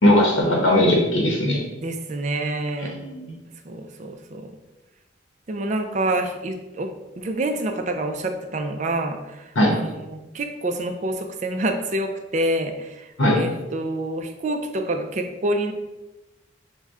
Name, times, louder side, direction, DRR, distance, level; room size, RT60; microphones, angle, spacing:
voice 1, 0.0-1.6 2.8-3.3 9.6-9.7 13.2-13.4, left 1 dB, 70° left, -1 dB, 0.8 m, -19 dB
voice 2, 1.8-2.9 3.6-4.5 5.5-13.1 13.3-15.7, right 1 dB, 35° right, 6 dB, 0.4 m, -27 dB
6.2 x 2.1 x 3.5 m, 1.1 s
head